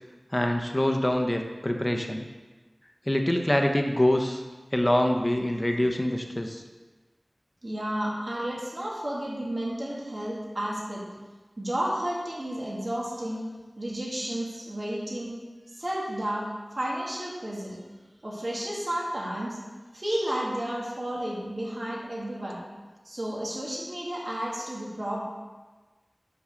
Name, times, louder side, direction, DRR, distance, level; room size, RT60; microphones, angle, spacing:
voice 1, 0.3-2.3 3.1-4.4 4.7-6.6, left 1 dB, 25° left, 3 dB, 0.9 m, -25 dB
voice 2, 7.6-11.0 11.6-13.4 13.8-15.4 15.7-17.8 18.2-19.6 19.9-22.6 23.0-25.2, right 1 dB, 50° right, -4 dB, 2.0 m, -32 dB
5.9 x 5.4 x 6.4 m, 1.3 s
wide cardioid pair, 50°, 0 cm